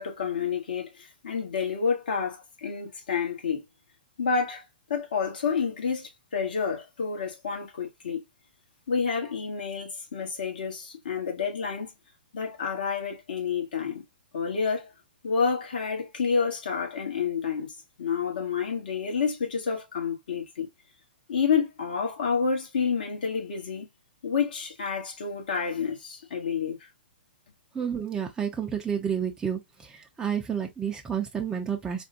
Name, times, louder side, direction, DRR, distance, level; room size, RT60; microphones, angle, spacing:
voice 1, 0.0-3.6 4.2-4.6 4.9-8.2 8.9-11.9 12.3-14.0 14.3-14.9 15.2-17.7 18.0-20.7 21.3-23.9 24.2-26.9, left 6 dB, 65° left, 1.3 m, -29 dB
voice 2, 27.7-32.0, right 8 dB, 10° right, 0.5 m, -30 dB
3.4 x 2.2 x 2.7 m
figure-of-eight pair, 115°, 5 cm